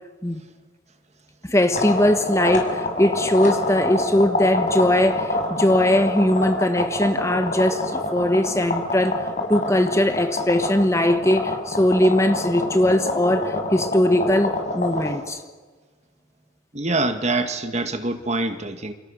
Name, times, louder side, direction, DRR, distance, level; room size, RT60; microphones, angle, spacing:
voice 1, 1.4-15.4, left 1 dB, 15° left, 8 dB, 1.3 m, -20 dB
sound 1, 1.7-15.2, left 2 dB, 40° left, 5.4 m, -26 dB
voice 2, 16.7-18.9, right 2 dB, 35° right, 8 dB, 2.0 m, -25 dB
29.5 x 28.5 x 6.6 m, 1.3 s
head